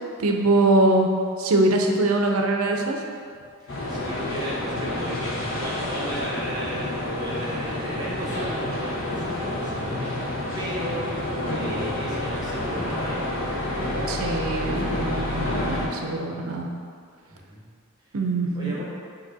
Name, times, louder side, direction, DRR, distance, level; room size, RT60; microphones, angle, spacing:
voice 1, 0.2-1.1 1.4-3.0 14.1-16.7 18.1-18.8, right 2 dB, 85° right, 2 dB, 0.6 m, -22 dB
voice 2, 3.6-11.0 11.5-13.6 17.3-17.6 18.5-18.8, equal, 20° right, -6 dB, 0.9 m, -35 dB
sound 1, 3.7-15.9, left 1 dB, 60° left, 1.1 m, -29 dB
8.1 x 2.9 x 4.0 m, 2.2 s
head